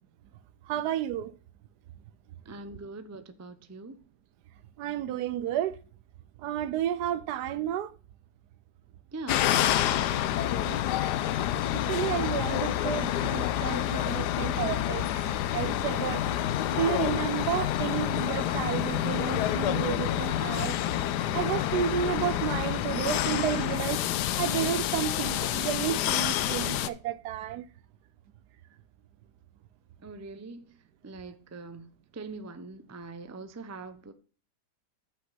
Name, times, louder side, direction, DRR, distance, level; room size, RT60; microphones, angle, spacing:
voice 1, 0.6-1.3 4.8-5.8 6.4-7.9 11.7-16.2 16.7-20.8 21.3-24.1 24.4-27.6, right 11 dB, 75° right, 1.2 m, -31 dB
voice 2, 2.4-4.0 9.1-10.8 30.0-30.8 31.0-34.1, right 3 dB, 20° right, 0.4 m, -43 dB
sound 1, 9.3-26.9, left 12 dB, 85° left, 1.2 m, -28 dB
Bass guitar, 19.4-25.6, left 1 dB, 30° left, 0.9 m, -48 dB
8.9 x 5.7 x 5.7 m
omnidirectional pair, 1.8 m